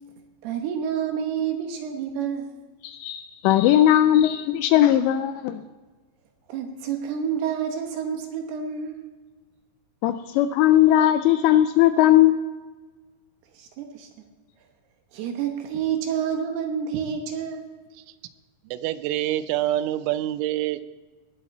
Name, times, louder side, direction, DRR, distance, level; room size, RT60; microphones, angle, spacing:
voice 1, 0.4-2.5 6.5-9.0 13.5-14.1 15.1-17.7, right 8 dB, 70° right, 4 dB, 2.7 m, -29 dB
voice 2, 2.8-5.6 10.0-12.4, left 12 dB, 85° left, 10 dB, 2.6 m, -18 dB
voice 3, 18.7-20.8, right 13 dB, 90° right, 14 dB, 3.1 m, -26 dB
20.0 x 7.4 x 4.2 m, 1.3 s
omnidirectional pair, 5.5 m